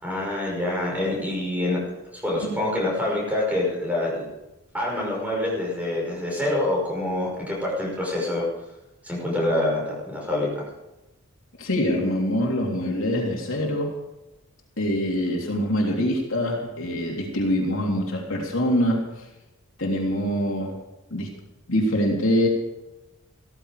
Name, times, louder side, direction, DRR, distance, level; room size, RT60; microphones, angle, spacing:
voice 1, 0.0-1.8 2.1-4.2 4.7-8.4 9.0-10.6, left 1 dB, 5° right, -3 dB, 5.8 m, -26 dB
voice 2, 11.6-13.9 14.8-19.0 19.8-20.8 21.1-21.3 21.7-22.5, equal, 65° left, -1 dB, 3.3 m, -24 dB
16.0 x 14.0 x 5.1 m, 0.98 s
head